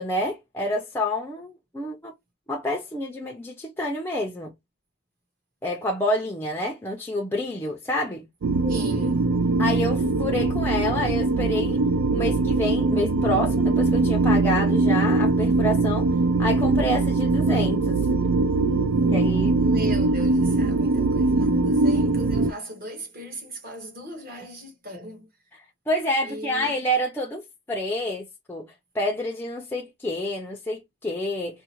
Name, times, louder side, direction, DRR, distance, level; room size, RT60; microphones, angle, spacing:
voice 1, 0.0-2.1 2.5-4.5 5.6-8.3 9.6-11.8 12.1-16.1 16.4-18.0 19.1-19.6 25.9-28.7 28.9-31.6, left 1 dB, 10° left, 0.4 m, -28 dB
sound 1, 8.4-22.5, right 3 dB, 90° right, 0.4 m, -22 dB
voice 2, 8.6-9.3 19.6-25.3 26.2-26.7, equal, 45° right, 1.1 m, -37 dB
3.6 x 2.1 x 2.9 m
head